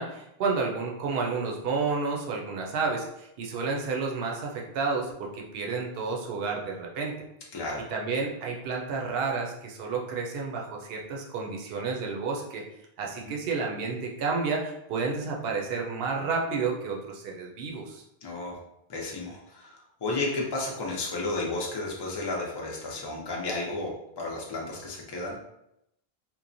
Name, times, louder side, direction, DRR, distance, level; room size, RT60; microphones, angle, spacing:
voice 1, 0.0-7.1 7.9-12.6 13.0-18.0, right 4 dB, 75° right, -1 dB, 0.8 m, -31 dB
voice 2, 18.2-18.6 18.9-25.4, left 2 dB, 35° left, -2 dB, 0.5 m, -33 dB
2.9 x 2.1 x 2.5 m, 0.82 s
omnidirectional pair, 1.0 m